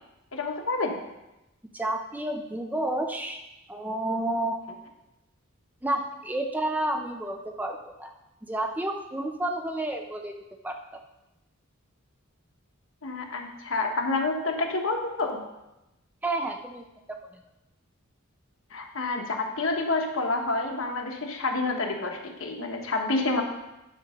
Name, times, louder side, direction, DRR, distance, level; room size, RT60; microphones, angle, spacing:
voice 1, 0.3-1.0 13.0-15.4 18.7-23.4, left 3 dB, 65° left, 2 dB, 1.3 m, -28 dB
voice 2, 1.7-3.4 3.7-4.6 5.8-8.1 8.5-10.4 10.6-11.0 16.2-17.2, right 1 dB, 5° right, 4 dB, 0.5 m, -30 dB
9.7 x 4.7 x 6.5 m, 0.95 s
head